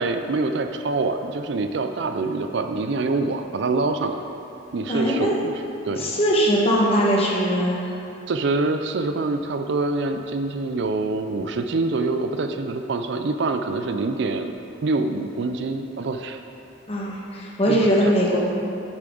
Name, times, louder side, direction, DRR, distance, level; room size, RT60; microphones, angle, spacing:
voice 1, 0.0-4.2 4.7-6.1 8.3-14.5 14.8-16.4 17.7-17.8, right 3 dB, 55° right, 7 dB, 0.4 m, -25 dB
voice 2, 4.9-5.4 6.0-7.9 16.9-18.4, equal, 30° left, -4 dB, 1.4 m, -21 dB
11.5 x 7.0 x 3.9 m, 2.8 s
head